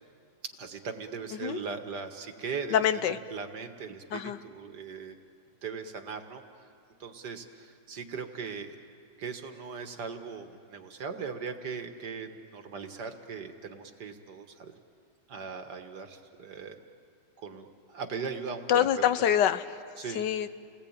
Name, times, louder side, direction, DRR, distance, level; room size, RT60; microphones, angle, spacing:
voice 1, 0.6-5.2 5.6-6.4 7.0-8.8 9.2-14.7 15.3-16.8 17.4-19.1 20.0-20.3, right 5 dB, 75° right, 6 dB, 2.1 m, -39 dB
voice 2, 2.7-3.2 4.1-4.4 18.7-19.6 20.1-20.5, left 10 dB, 85° left, 12 dB, 1.5 m, -25 dB
30.0 x 19.5 x 8.8 m, 2.3 s
omnidirectional pair, 1.8 m